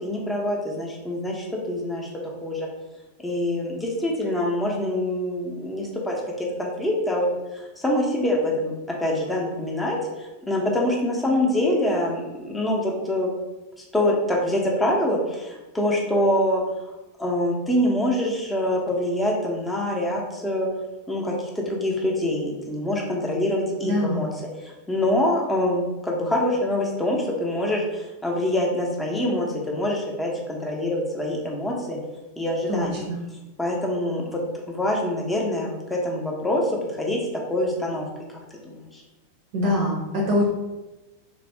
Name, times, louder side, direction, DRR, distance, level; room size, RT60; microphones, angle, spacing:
voice 1, 0.0-2.1 2.4-2.7 3.2-7.3 7.8-8.7 9.0-13.3 13.9-16.6 17.2-20.7 21.1-24.3 24.6-32.0 32.4-33.0 33.6-34.4 34.7-37.2 37.5-38.1 38.9-39.0, left 1 dB, 5° left, -2 dB, 0.8 m, -25 dB
voice 2, 23.8-24.3 32.7-33.2 39.5-40.5, left 1 dB, 45° right, -1 dB, 0.6 m, -24 dB
3.6 x 2.5 x 3.3 m, 1.1 s
figure-of-eight pair, 90°, 0 cm